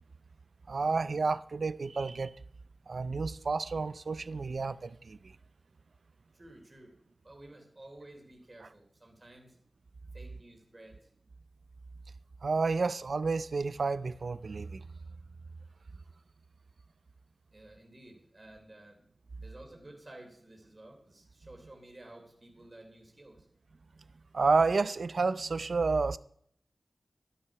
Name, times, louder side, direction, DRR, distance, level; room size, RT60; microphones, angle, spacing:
voice 1, 0.7-2.3 2.9-5.2 12.4-14.8 24.3-26.2, right 4 dB, 80° right, 0.6 m, -30 dB
voice 2, 6.3-6.9 7.2-9.6 10.1-11.1 17.5-19.0 19.4-23.5, right 1 dB, 40° right, 3.3 m, -53 dB
12.0 x 11.5 x 6.0 m
wide cardioid pair, 70°, 0 cm